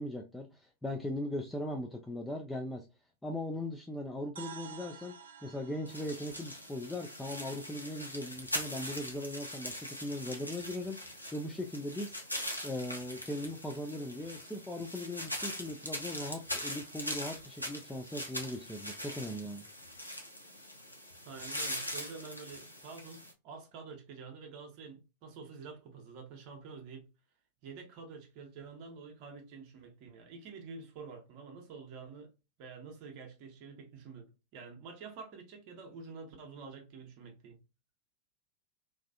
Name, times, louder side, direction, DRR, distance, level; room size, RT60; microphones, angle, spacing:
voice 1, 0.0-2.9 3.2-5.2 5.4-12.2 12.6-19.6, left 1 dB, 5° left, 0.3 m, -39 dB
sound 1, 4.4-8.3, right 7 dB, 70° right, 0.4 m, -52 dB
sound 2, 5.9-23.3, equal, 90° left, 0.6 m, -42 dB
voice 2, 21.2-27.1 27.6-32.3 32.6-34.2 34.5-37.6, right 5 dB, 45° right, 0.7 m, -48 dB
2.4 x 2.4 x 2.2 m
figure-of-eight pair, 90°, 0 cm